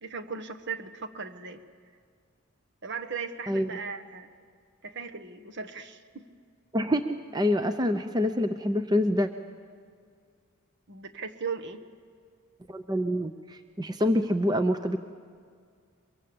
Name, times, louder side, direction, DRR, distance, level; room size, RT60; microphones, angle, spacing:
voice 1, 0.0-1.6 2.8-4.3 4.8-6.3 10.9-11.8, right 5 dB, 55° right, 7 dB, 1.3 m, -37 dB
voice 2, 6.7-9.3 12.7-15.0, left 1 dB, 20° right, 8 dB, 0.6 m, -26 dB
23.5 x 23.0 x 8.7 m, 2.1 s
head